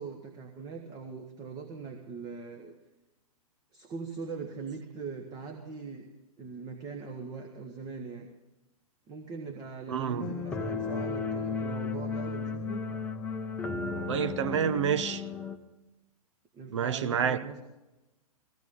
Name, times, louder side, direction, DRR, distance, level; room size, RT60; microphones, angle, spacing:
voice 1, 0.0-2.7 3.7-6.1 6.4-8.3 9.1-12.8 16.5-17.6, right 5 dB, 20° right, 1.4 m, -41 dB
voice 2, 9.9-10.4 14.1-15.2 16.7-17.5, right 8 dB, 50° right, 0.9 m, -28 dB
sound 1, 10.2-15.6, left 4 dB, 10° left, 0.9 m, -34 dB
19.5 x 16.0 x 3.8 m
figure-of-eight pair, 115°, 19 cm